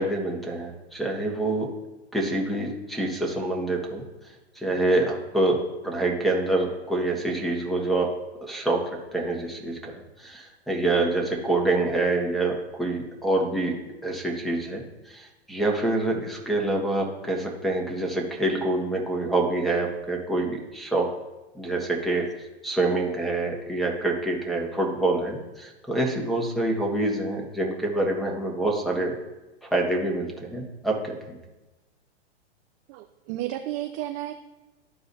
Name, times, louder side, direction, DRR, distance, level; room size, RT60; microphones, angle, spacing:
voice 1, 0.0-1.7 2.1-8.1 8.4-13.7 14.0-21.1 21.5-29.1 29.6-31.4, right 2 dB, ahead, 0 dB, 1.4 m, -26 dB
voice 2, 32.9-34.3, right 14 dB, 30° right, 6 dB, 0.4 m, -32 dB
13.5 x 4.7 x 2.7 m, 1.1 s
hypercardioid pair, 130°, 33 cm